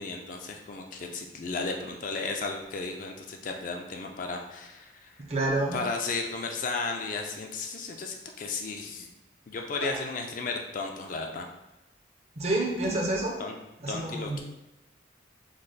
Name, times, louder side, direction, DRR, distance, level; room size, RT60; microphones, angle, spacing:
voice 1, 0.0-5.2 5.7-9.1 9.5-11.5 12.8-13.0 13.4-13.5 13.9-14.4, left 3 dB, 45° left, 2 dB, 0.3 m, -34 dB
voice 2, 5.3-5.8 12.4-13.4 13.8-14.4, right 2 dB, 35° right, 0 dB, 0.5 m, -28 dB
3.2 x 2.0 x 3.9 m, 0.97 s
head